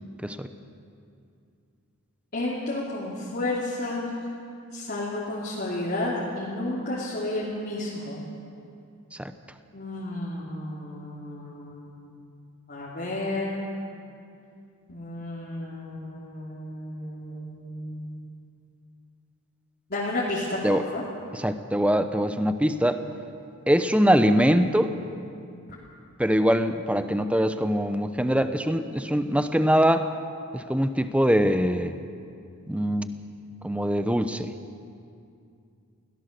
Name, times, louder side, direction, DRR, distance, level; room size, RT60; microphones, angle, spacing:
voice 1, 2.3-4.1 4.7-8.2 9.7-12.1 12.7-13.7 14.9-18.3 19.9-21.0, left 2 dB, 45° left, -7 dB, 2.9 m, -32 dB
voice 2, 21.3-23.0 23.7-24.9 26.2-30.1 30.5-31.9 32.7-33.1 33.6-34.5, equal, 5° right, 9 dB, 0.7 m, -23 dB
23.0 x 17.0 x 6.7 m, 2.5 s
head